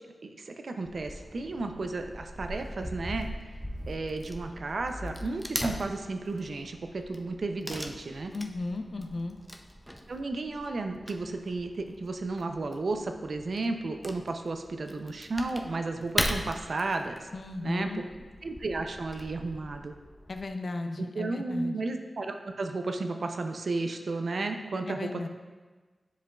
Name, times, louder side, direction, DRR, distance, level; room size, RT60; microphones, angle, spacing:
voice 1, 0.2-3.3 3.9-8.3 10.1-17.3 17.6-18.0 18.4-19.9 21.0-25.3, right 3 dB, 70° right, 6 dB, 0.5 m, -33 dB
Wood / Tearing, 0.9-20.5, equal, ahead, 0.5 m, -40 dB
voice 2, 8.3-9.4 17.3-18.0 20.3-21.8 24.9-25.3, left 2 dB, 60° left, 6 dB, 0.5 m, -35 dB
10.5 x 4.5 x 2.4 m, 1.3 s
wide cardioid pair, 75°, 0 cm